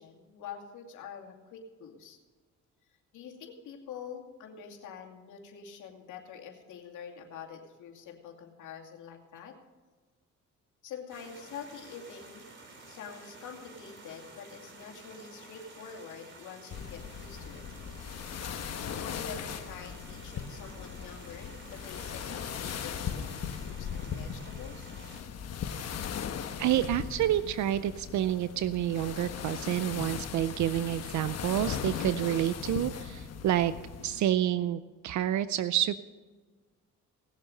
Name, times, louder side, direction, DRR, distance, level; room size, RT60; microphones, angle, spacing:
voice 1, 0.0-2.2 3.1-9.6 10.8-12.4 12.9-17.7 18.9-24.9, left 7 dB, 80° left, 2 dB, 2.5 m, -46 dB
sound 1, 11.1-25.2, right 2 dB, 40° right, 3.3 m, -51 dB
sound 2, 16.7-34.3, left 7 dB, 55° left, 1.1 m, -38 dB
voice 2, 26.6-33.7 34.0-36.0, right 12 dB, 70° right, 14 dB, 0.6 m, -29 dB
19.0 x 7.5 x 6.5 m, 1.4 s
cardioid pair, 90°, 30 cm